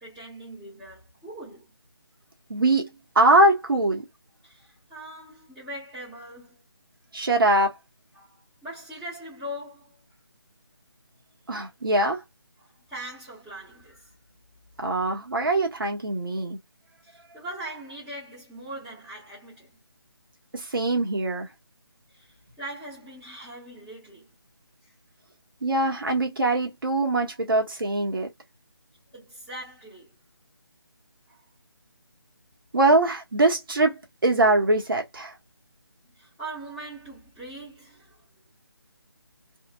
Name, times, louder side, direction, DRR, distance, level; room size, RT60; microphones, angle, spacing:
voice 1, 0.0-1.7 4.4-6.6 8.1-10.0 12.6-14.1 17.0-19.8 22.1-24.4 24.8-24.9 29.1-30.1 31.3-31.4 36.1-38.2, right 1 dB, ahead, 1.0 m, -41 dB
voice 2, 2.5-4.0 7.1-7.7 11.5-12.2 14.8-16.6 20.5-21.5 25.6-28.3 32.7-35.3, right 2 dB, 60° right, 1.1 m, -22 dB
2.8 x 2.4 x 2.2 m
figure-of-eight pair, 160°, 13 cm